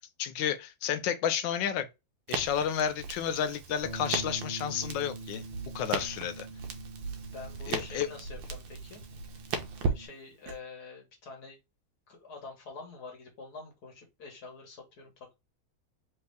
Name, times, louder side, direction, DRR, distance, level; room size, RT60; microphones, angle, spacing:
voice 1, 0.2-1.9 2.3-6.5 7.7-8.1, left 9 dB, 80° left, 1.3 m, -31 dB
Crackle, 2.3-10.6, right 5 dB, 85° right, 1.4 m, -38 dB
Bass guitar, 3.8-10.1, right 2 dB, 35° right, 0.9 m, -44 dB
voice 2, 7.3-9.0 9.8-11.6 12.1-15.3, left 4 dB, 60° left, 1.6 m, -46 dB
3.4 x 3.3 x 3.3 m
omnidirectional pair, 2.0 m